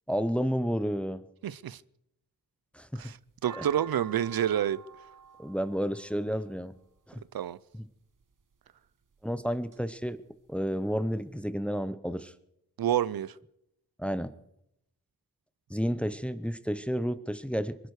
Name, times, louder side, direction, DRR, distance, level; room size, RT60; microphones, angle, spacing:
voice 1, 0.1-1.2 2.7-3.0 3.5-3.7 5.4-6.7 7.1-7.2 7.7-7.8 9.2-10.2 10.5-12.3 14.0-14.3 15.7-17.8, equal, 5° left, 0.6 m, -31 dB
voice 2, 1.4-1.8 3.0-3.2 3.4-4.8 7.3-7.6 12.8-13.3, right 10 dB, 80° right, 0.5 m, -28 dB
sound 1, 3.0-7.2 8.1-8.5 9.1-9.8 10.1-10.2 10.4-11.2, right 7 dB, 60° right, 1.3 m, -49 dB
24.0 x 11.0 x 4.8 m
wide cardioid pair, 110°, 35 cm